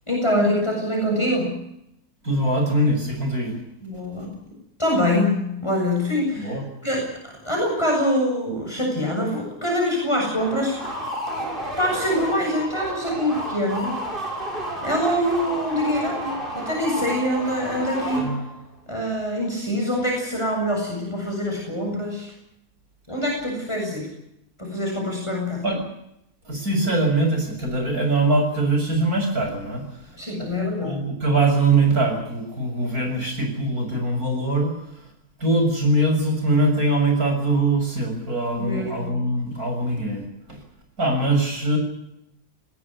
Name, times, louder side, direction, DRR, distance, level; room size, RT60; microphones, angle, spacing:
voice 1, 0.1-1.6 3.8-4.3 4.8-6.6 6.8-10.8 11.4-11.5 11.8-14.0 14.8-18.3 18.9-22.3 23.1-24.1 24.6-25.6 30.2-31.0 38.6-39.2, equal, 20° left, -1 dB, 7.1 m, -24 dB
voice 2, 2.2-3.6 6.4-6.6 25.6-25.8 26.5-34.7 35.4-40.6 41.0-41.8, right 2 dB, 70° right, 4 dB, 7.2 m, -22 dB
sound 1, 10.4-18.7, equal, 35° right, 6.7 m, -31 dB
21.0 x 17.5 x 9.9 m, 0.82 s
omnidirectional pair, 1.6 m